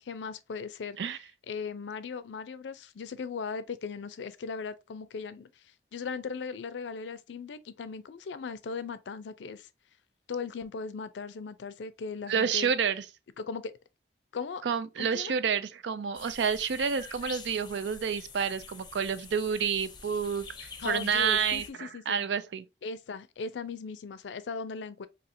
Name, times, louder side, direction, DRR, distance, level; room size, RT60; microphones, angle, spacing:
voice 1, 0.1-1.0 1.5-5.5 5.9-9.7 10.3-12.7 13.4-13.7 14.3-14.6 15.0-15.3 20.8-22.2 22.8-25.1, left 5 dB, 85° left, 0.4 m, -38 dB
voice 2, 12.3-13.0 14.6-22.6, right 7 dB, 85° right, 0.4 m, -29 dB
sound 1, 16.1-21.7, left 5 dB, 25° left, 0.6 m, -45 dB
4.2 x 2.8 x 2.6 m
head